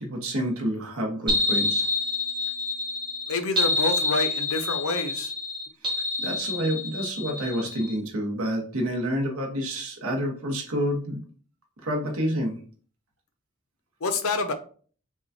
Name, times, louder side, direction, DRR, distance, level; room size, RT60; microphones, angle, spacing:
voice 1, 0.0-1.9 6.2-11.2 11.8-12.6, equal, 75° right, 1.2 m, -28 dB
sound 1, 1.3-7.9, left 2 dB, 20° right, 1.1 m, -27 dB
voice 2, 3.3-5.3 14.0-14.5, left 3 dB, 75° left, 0.7 m, -27 dB
6.0 x 2.3 x 2.7 m
head